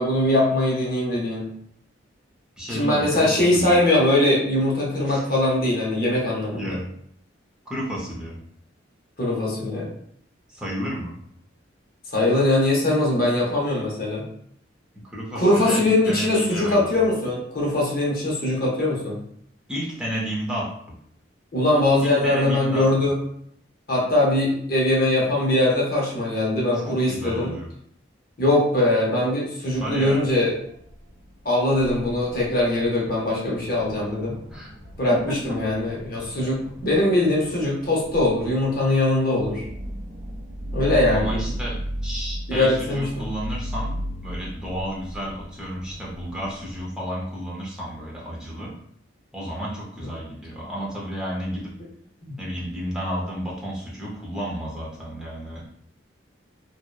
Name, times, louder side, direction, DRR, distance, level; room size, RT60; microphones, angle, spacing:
voice 1, 0.0-1.5 2.7-6.8 9.2-9.9 12.1-14.2 15.3-19.2 21.5-23.2 23.9-27.5 28.4-30.5 31.4-34.3 35.0-39.6 40.7-41.4 42.5-43.1, left 1 dB, 50° left, -4 dB, 0.7 m, -21 dB
voice 2, 2.6-3.8 5.1-5.2 6.5-6.9 7.7-8.4 10.5-11.2 15.0-16.8 19.7-21.0 22.0-22.9 26.7-27.7 29.8-30.2 34.5-34.7 35.1-35.6 40.8-44.0 44.2-48.7 49.3-51.7 52.4-55.7, equal, 5° right, -5 dB, 0.5 m, -32 dB
sound 1, 30.5-46.9, equal, 85° right, 0.6 m, -36 dB
2.8 x 2.0 x 2.3 m, 0.66 s
head